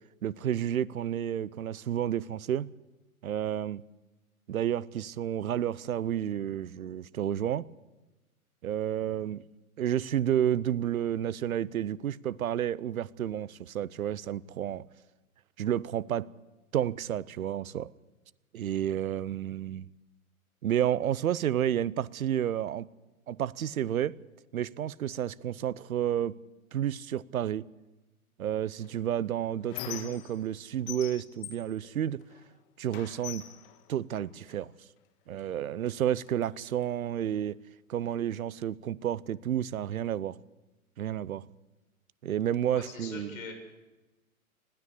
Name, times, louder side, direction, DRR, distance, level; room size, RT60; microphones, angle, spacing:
voice 1, 0.2-2.7 3.2-3.8 4.5-7.7 8.6-9.4 9.8-14.8 15.6-16.3 16.7-17.9 18.5-19.8 20.6-22.9 23.3-24.2 24.5-26.4 26.7-27.7 28.4-32.2 32.8-33.5 33.9-34.7 35.3-37.6 37.9-40.4 41.0-41.5 42.2-43.4, right 10 dB, 70° right, 0.8 m, -31 dB
Squeak, 28.8-30.6 30.9-32.5 32.9-34.6 35.4-35.5 35.9-36.9, left 12 dB, 40° left, 1.7 m, -44 dB
voice 2, 42.7-43.5, left 5 dB, 65° left, 6.7 m, -42 dB
20.5 x 16.0 x 8.3 m
hypercardioid pair, 125°, 43 cm